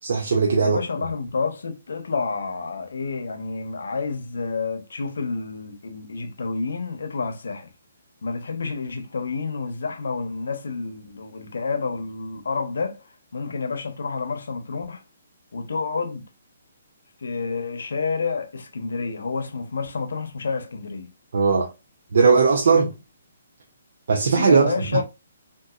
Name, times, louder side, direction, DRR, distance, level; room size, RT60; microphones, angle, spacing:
voice 1, 0.0-0.8 21.3-21.7 22.1-22.9 24.1-25.0, right 5 dB, 70° right, 0.6 m, -18 dB
voice 2, 0.6-7.7 8.2-13.0 13.3-15.0 15.5-16.2 17.2-21.1 22.7-22.9 24.4-25.0, left 4 dB, 80° left, 0.7 m, -29 dB
3.8 x 2.6 x 2.4 m
hypercardioid pair, 155°, 0 cm